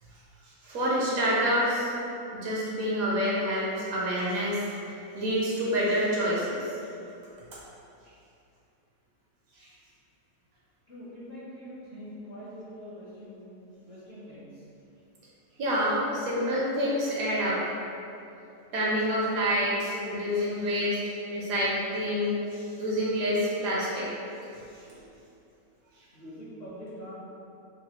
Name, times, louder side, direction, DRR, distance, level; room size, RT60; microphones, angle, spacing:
voice 1, 0.6-1.8 2.3-4.7 5.1-6.7 15.6-17.6 18.7-21.0 21.3-24.1 24.9-25.0, equal, 70° right, -6 dB, 1.0 m, -27 dB
voice 2, 10.9-14.7 26.1-27.1, equal, 55° left, -11 dB, 0.7 m, -44 dB
3.1 x 2.2 x 2.9 m, 2.7 s
omnidirectional pair, 1.7 m